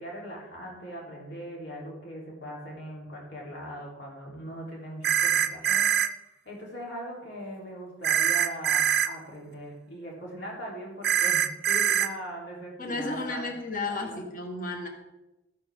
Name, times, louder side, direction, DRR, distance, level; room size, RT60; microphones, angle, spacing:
voice 1, 0.0-5.9 6.5-13.4 13.8-14.2, equal, 75° left, -3 dB, 3.6 m, -40 dB
sound 1, 5.0-6.1 8.0-9.1 11.0-12.1, right 9 dB, 60° right, 0.5 m, -23 dB
voice 2, 12.8-14.9, left 2 dB, 45° left, 3 dB, 1.4 m, -33 dB
14.0 x 9.3 x 3.7 m, 0.99 s
head